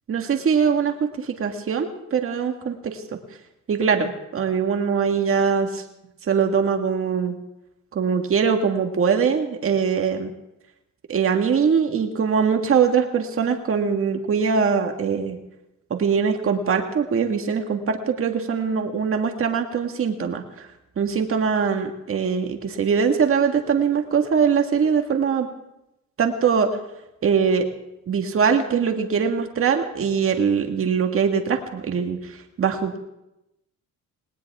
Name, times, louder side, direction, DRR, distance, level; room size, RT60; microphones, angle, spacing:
voice 1, 0.1-3.0 3.7-5.8 6.2-7.4 7.9-10.3 11.1-15.4 15.9-20.7 21.0-25.5 26.2-26.7 27.2-27.7 28.1-32.3 32.6-33.0, right 6 dB, 45° right, 5 dB, 1.8 m, -22 dB
19.0 x 18.5 x 3.6 m, 0.88 s
cardioid pair, 90°, 30 cm